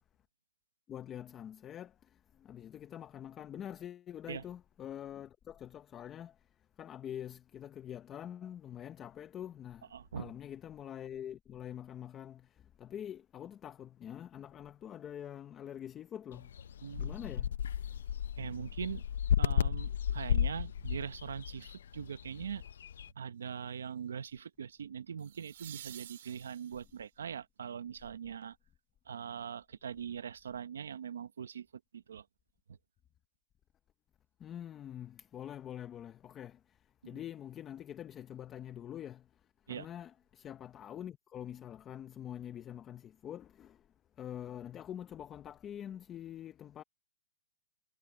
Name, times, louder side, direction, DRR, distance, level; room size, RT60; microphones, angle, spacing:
voice 1, 0.9-6.4 6.8-16.5 16.8-17.6 17.9-18.0 18.4-18.5 34.4-39.3 39.7-43.8 44.2-46.8, left 10 dB, 15° left, 0.7 m, -45 dB
voice 2, 9.9-10.3 16.8-17.1 18.4-19.0 19.4-22.6 23.1-28.6 29.1-31.7 31.9-32.2 37.1-37.2 39.7-39.9, right 7 dB, 80° right, 1.0 m, -41 dB
sound 1, 16.3-23.1, left 9 dB, 65° left, 0.5 m, -34 dB
sound 2, 22.2-22.5 25.2-27.1 30.0-30.1, right 12 dB, 50° right, 2.2 m, -51 dB
hypercardioid pair, 165°, 0 cm